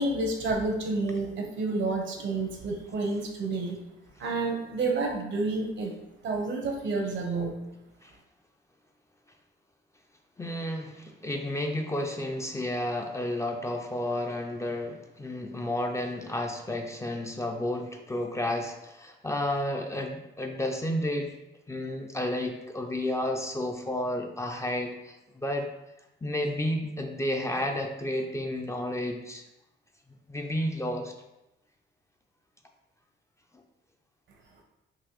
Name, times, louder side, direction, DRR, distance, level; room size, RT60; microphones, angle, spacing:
voice 1, 0.0-3.8 4.2-5.9 6.2-7.5, right 3 dB, 65° right, 2 dB, 0.8 m, -29 dB
voice 2, 10.4-21.3 21.7-25.7 26.2-29.4 30.3-31.1, left 1 dB, 15° left, 2 dB, 0.4 m, -31 dB
4.0 x 2.6 x 3.0 m, 0.94 s
cardioid pair, 90°, 20 cm